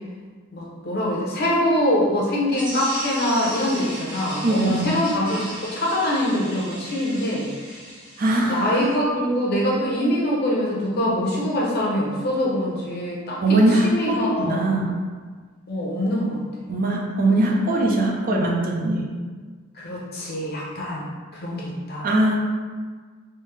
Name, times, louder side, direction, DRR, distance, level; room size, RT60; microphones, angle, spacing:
voice 1, 0.5-7.5 8.5-13.4 13.8-14.8 15.7-16.7 19.8-21.1 21.3-22.1, left 1 dB, 50° left, -4 dB, 0.8 m, -24 dB
sound 1, 2.5-8.9, right 1 dB, 20° right, 0.9 m, -36 dB
voice 2, 4.4-4.9 8.2-8.9 13.4-14.9 16.7-19.1 22.0-22.4, right 1 dB, 40° right, -1 dB, 0.5 m, -21 dB
3.4 x 2.7 x 3.2 m, 1.5 s
head